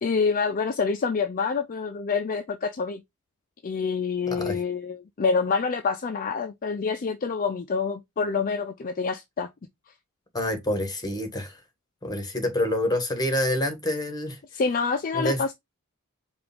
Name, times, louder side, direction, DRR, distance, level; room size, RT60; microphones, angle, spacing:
voice 1, 0.0-3.0 3.6-9.5 14.5-15.5, left 5 dB, 40° left, 0.4 m, -27 dB
voice 2, 4.3-4.6 10.3-11.6 12.0-14.4 15.1-15.5, left 1 dB, 20° left, 1.3 m, -27 dB
4.8 x 2.4 x 3.4 m
head